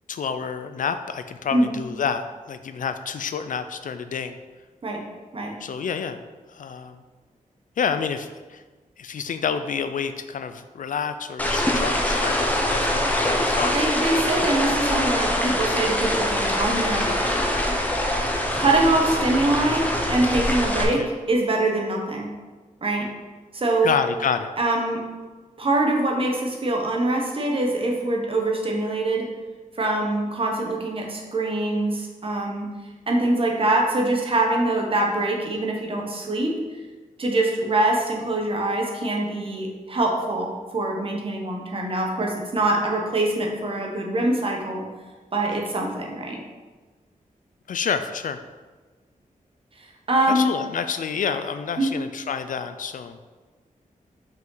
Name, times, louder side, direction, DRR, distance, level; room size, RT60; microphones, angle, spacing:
voice 1, 0.1-4.4 5.6-6.2 6.5-7.0 7.8-8.6 9.0-13.8 20.8-21.1 23.8-24.5 47.7-48.4 50.3-53.2, left 6 dB, 70° left, 10 dB, 0.4 m, -28 dB
sound 1, 11.4-20.8, left 1 dB, 10° left, 0.7 m, -24 dB
voice 2, 13.7-17.1 18.5-22.3 22.8-23.1 23.5-24.0 24.6-25.0 25.6-29.3 29.8-32.7 33.1-36.5 37.2-44.8 45.3-46.4 49.8-50.5 51.8-51.9, right 2 dB, 40° right, 1 dB, 1.0 m, -24 dB
5.4 x 5.2 x 3.9 m, 1.3 s
wide cardioid pair, 160°, 14 cm